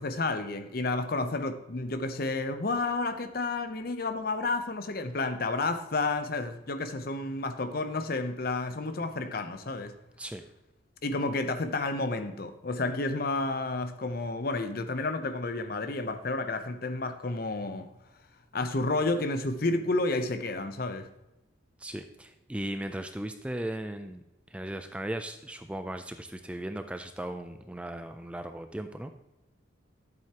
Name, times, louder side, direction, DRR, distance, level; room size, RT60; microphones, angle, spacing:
voice 1, 0.0-9.9 11.0-17.9 18.5-21.1, left 3 dB, 50° left, 0.7 m, -31 dB
voice 2, 21.8-29.1, right 1 dB, 5° right, 0.3 m, -37 dB
10.5 x 7.7 x 2.9 m
head